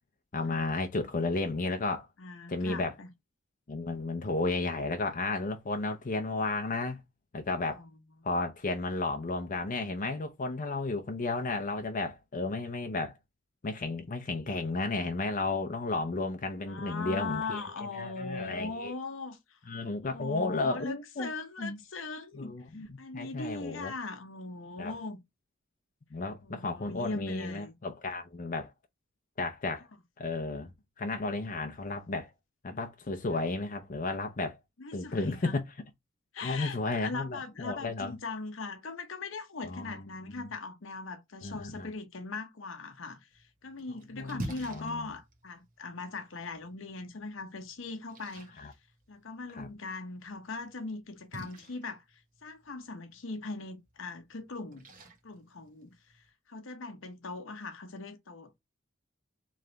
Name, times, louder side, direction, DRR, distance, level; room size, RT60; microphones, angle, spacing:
voice 1, 0.3-2.1 2.5-2.9 3.7-7.0 7.3-7.8 8.2-13.1 13.6-17.6 17.9-18.9 19.7-21.3 21.6-21.8 22.4-23.9 24.8-24.9 26.1-28.7 29.4-29.9 30.2-30.7 31.0-32.3 32.6-34.6 34.9-35.6 36.4-38.1 39.7-40.5 41.4-41.9 44.1-45.1 48.6-48.7 49.6-49.7, left 3 dB, 40° left, 0.5 m, -33 dB
voice 2, 2.2-3.1 7.7-7.9 16.7-19.6 20.0-25.2 26.4-27.7 34.8-35.6 36.3-48.7 49.1-54.8 55.2-58.6, left 3 dB, 70° left, 0.8 m, -40 dB
Splash splatter, 43.3-56.3, right 2 dB, 45° right, 1.0 m, -49 dB
3.3 x 3.1 x 3.8 m
head